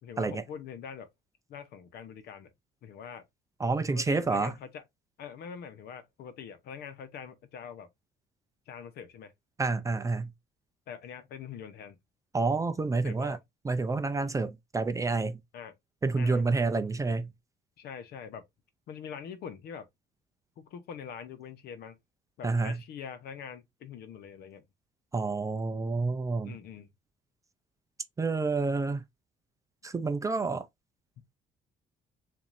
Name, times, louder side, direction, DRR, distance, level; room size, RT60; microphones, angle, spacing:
voice 1, 0.0-1.1 1.5-2.5 2.8-3.2 3.9-4.8 5.2-7.9 8.7-9.3 10.9-12.0 13.0-13.4 15.5-15.7 16.2-16.4 17.8-18.4 18.9-19.9 20.6-22.0 22.4-24.6 26.4-26.9, left 7 dB, 70° left, 0.9 m, -43 dB
voice 2, 3.6-4.5 9.6-10.3 12.3-13.4 13.6-15.4 16.0-17.3 22.4-22.8 25.1-26.6 28.2-29.0 29.8-30.7, right 3 dB, 20° right, 0.4 m, -29 dB
7.1 x 2.6 x 2.6 m
cardioid pair, 110°, 17 cm